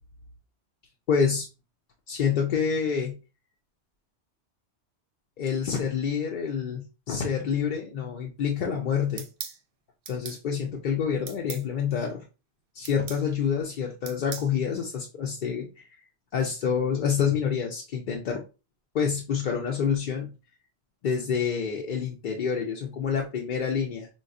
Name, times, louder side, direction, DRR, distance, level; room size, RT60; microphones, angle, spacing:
voice 1, 1.1-1.5 2.1-3.1 5.4-9.3 10.1-12.2 12.7-15.8 16.3-18.4 18.9-20.3 21.0-24.1, left 7 dB, 60° left, 0 dB, 0.6 m, -27 dB
sound 1, 9.2-9.6 10.1-10.4 11.3-11.7 12.8-13.2 14.1-14.5, right 7 dB, 60° right, 0.7 m, -38 dB
3.9 x 2.3 x 2.4 m, 0.31 s
omnidirectional pair, 1.2 m